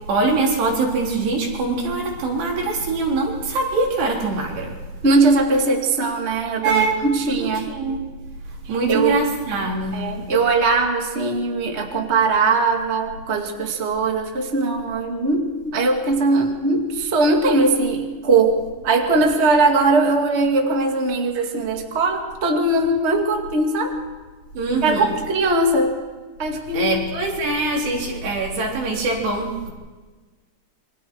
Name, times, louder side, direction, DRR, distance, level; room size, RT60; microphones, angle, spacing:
voice 1, 0.1-4.7 6.6-6.9 7.4-8.0 8.7-10.0 24.5-25.1 26.7-29.7, right 3 dB, 90° right, -2 dB, 6.1 m, -23 dB
voice 2, 5.0-7.7 8.9-9.2 9.9-23.9 24.8-26.0 26.4-26.9, right 3 dB, 20° right, 2 dB, 1.9 m, -20 dB
27.5 x 24.5 x 4.9 m, 1.3 s
omnidirectional pair, 4.6 m